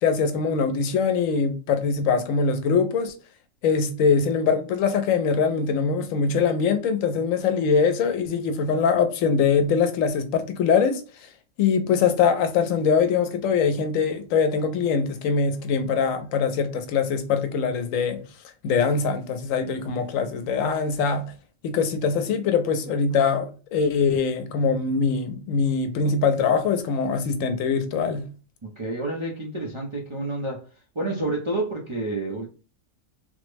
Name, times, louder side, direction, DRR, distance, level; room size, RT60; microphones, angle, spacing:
voice 1, 0.0-3.1 3.6-11.0 11.6-18.2 18.6-21.2 21.6-28.2, left 5 dB, 85° left, 1.0 m, -23 dB
voice 2, 28.6-30.6 31.0-32.5, right 2 dB, 40° right, 0.4 m, -29 dB
3.5 x 2.0 x 3.2 m
omnidirectional pair, 1.3 m